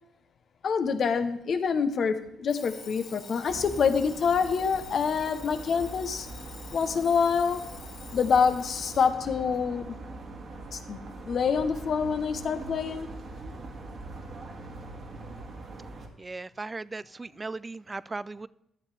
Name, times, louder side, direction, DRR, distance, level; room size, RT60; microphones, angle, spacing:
voice 1, 0.6-6.3 6.7-7.7 8.1-10.0 10.7-13.1, left 6 dB, 55° left, 8 dB, 0.9 m, -26 dB
Alarm, 2.5-9.2, left 6 dB, 70° left, 2.3 m, -47 dB
sound 1, 3.5-16.1, right 2 dB, 50° right, 1.8 m, -42 dB
voice 2, 16.2-18.5, right 3 dB, 25° right, 19 dB, 0.3 m, -37 dB
13.0 x 7.4 x 3.3 m, 0.79 s
cardioid pair, 90°, 0 cm